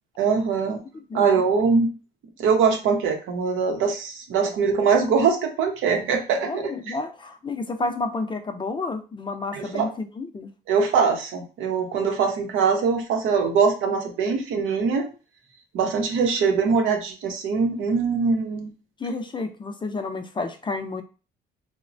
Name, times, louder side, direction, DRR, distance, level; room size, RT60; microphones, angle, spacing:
voice 1, 0.2-0.8 1.1-1.9 2.4-6.6 9.5-9.9 10.7-15.1 15.7-18.7, right 5 dB, 90° right, 3 dB, 0.7 m, -22 dB
voice 2, 6.5-10.5 19.0-21.0, left 3 dB, 25° left, 7 dB, 0.4 m, -30 dB
3.0 x 2.1 x 2.5 m, 0.34 s
cardioid pair, 90°, 20 cm